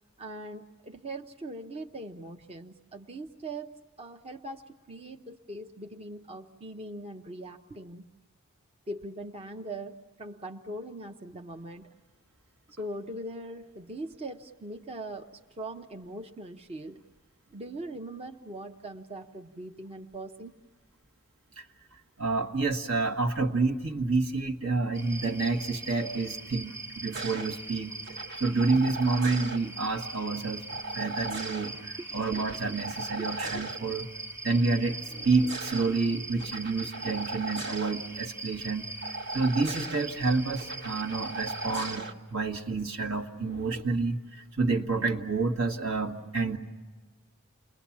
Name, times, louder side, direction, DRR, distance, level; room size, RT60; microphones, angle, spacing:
voice 1, 0.2-3.7 4.0-8.0 8.9-11.9 12.7-17.0 17.5-20.6 32.0-32.1 33.2-33.3, right 1 dB, 30° right, 4 dB, 0.7 m, -41 dB
voice 2, 22.2-27.9 28.4-34.1 34.4-35.0 35.2-38.9 39.3-46.6, right 3 dB, 70° right, 4 dB, 1.7 m, -29 dB
sound 1, 24.9-42.0, right 2 dB, 10° right, 1.3 m, -41 dB
sound 2, 27.1-27.5 28.0-29.6 30.7-31.7 32.2-33.8 35.1-35.9 36.4-37.9 39.0-40.0 40.6-42.1 43.4-43.8, right 2 dB, 50° right, 1.3 m, -38 dB
29.0 x 21.5 x 7.3 m, 1.3 s
head